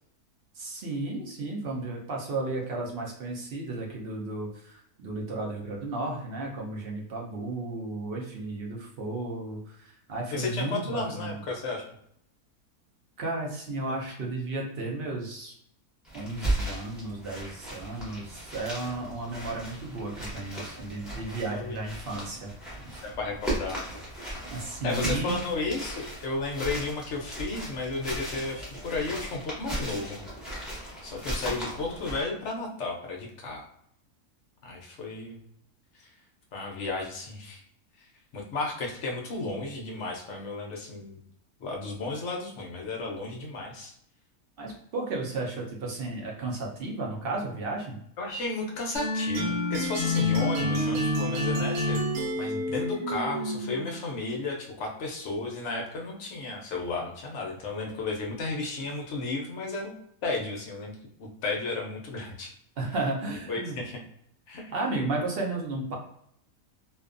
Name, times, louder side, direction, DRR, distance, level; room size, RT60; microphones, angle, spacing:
voice 1, 0.5-11.4 13.2-15.5 16.1-22.5 22.9-23.0 24.5-25.4 44.6-48.0 62.8-63.8 64.7-65.9, right 2 dB, 60° right, -1 dB, 0.6 m, -33 dB
voice 2, 10.3-11.8 21.3-21.8 23.0-23.9 24.8-30.2 31.0-33.7 34.6-35.4 36.5-37.6 38.3-41.2 41.6-43.9 48.2-52.0 52.4-59.9 60.2-60.9 61.2-62.5 63.5-64.0 64.5-64.7, left 3 dB, 65° left, 0 dB, 0.8 m, -33 dB
sound 1, 16.0-32.2, right 1 dB, ahead, 0.6 m, -36 dB
sound 2, 49.0-54.1, left 1 dB, 80° right, 1.1 m, -28 dB
2.6 x 2.2 x 2.4 m, 0.70 s
omnidirectional pair, 1.6 m